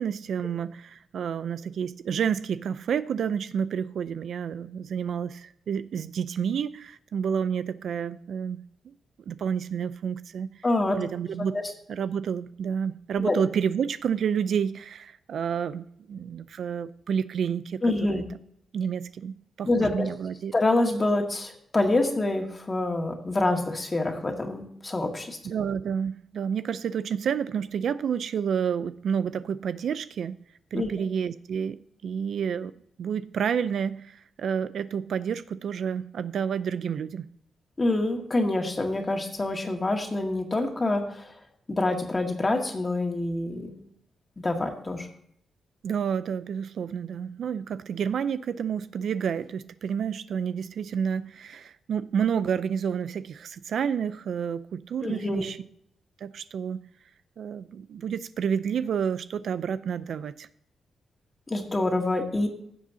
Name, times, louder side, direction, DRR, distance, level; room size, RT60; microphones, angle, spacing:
voice 1, 0.0-8.6 9.3-10.5 10.9-11.6 11.9-18.2 18.7-20.5 25.4-30.4 30.7-31.8 32.0-32.7 33.0-37.3 45.8-55.6 56.2-56.8 57.4-60.5, right 7 dB, 70° right, 14 dB, 0.4 m, -29 dB
voice 2, 10.6-11.0 11.5-11.6 13.2-13.4 17.8-18.2 19.7-20.1 20.5-25.4 30.7-31.1 37.8-41.3 41.7-43.7 44.4-45.1 55.0-55.5 61.5-62.5, left 2 dB, 25° left, 2 dB, 1.9 m, -26 dB
16.0 x 7.4 x 2.7 m, 0.69 s
cardioid pair, 105°, 0 cm